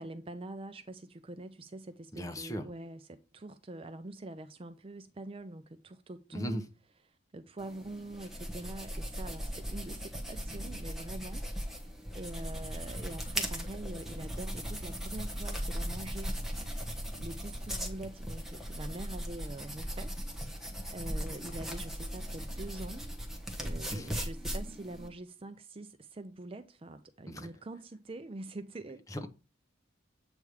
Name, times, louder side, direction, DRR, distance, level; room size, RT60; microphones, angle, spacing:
voice 1, 0.0-6.7 7.3-16.4 17.2-23.1 23.6-29.0, right 2 dB, 25° right, 0.4 m, -44 dB
voice 2, 2.1-2.6 6.3-6.7 23.9-24.1 27.3-27.5 29.1-29.3, equal, 15° left, 0.9 m, -37 dB
sound 1, 7.6-25.1, equal, ahead, 1.2 m, -38 dB
8.2 x 3.5 x 4.7 m
head